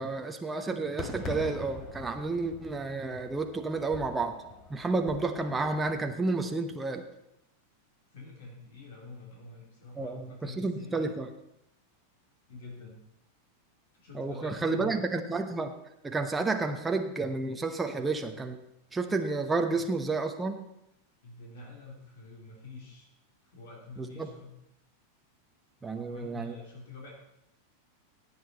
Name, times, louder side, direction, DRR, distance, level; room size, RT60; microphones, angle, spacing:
voice 1, 0.0-4.4 4.7-7.0 10.0-11.3 14.1-15.7 16.0-18.6 18.9-20.6 24.0-24.3 25.8-26.6, right 3 dB, 10° right, 5 dB, 1.0 m, -31 dB
Fireworks, 1.0-6.0, left 4 dB, 30° left, 1.7 m, -44 dB
voice 2, 8.1-11.1 12.5-13.0 14.0-15.0 17.9-18.1 21.2-23.1 23.4-24.6 25.9-27.1, left 3 dB, 55° left, -2 dB, 3.3 m, -47 dB
17.0 x 8.8 x 4.1 m, 0.82 s
figure-of-eight pair, 90°, 0 cm